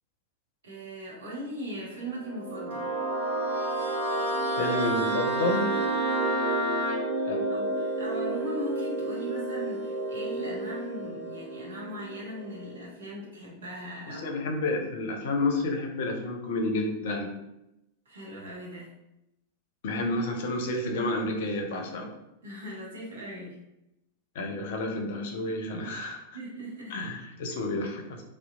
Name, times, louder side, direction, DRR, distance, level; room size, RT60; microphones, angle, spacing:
voice 1, 0.6-2.9 7.5-14.4 18.1-18.9 22.4-23.5 26.3-27.0, equal, 65° right, -4 dB, 0.8 m, -39 dB
sound 1, 2.0-12.9, right 2 dB, 5° right, 1.3 m, -32 dB
Wind instrument woodwind instrument, 2.7-7.0, right 1 dB, 40° right, 0.7 m, -31 dB
voice 2, 4.6-5.7 7.2-7.4 14.1-17.3 19.8-22.1 24.4-26.2 26.9-28.2, left 2 dB, 55° left, 3 dB, 0.5 m, -30 dB
2.8 x 2.1 x 2.3 m, 0.87 s
figure-of-eight pair, 90°, 0 cm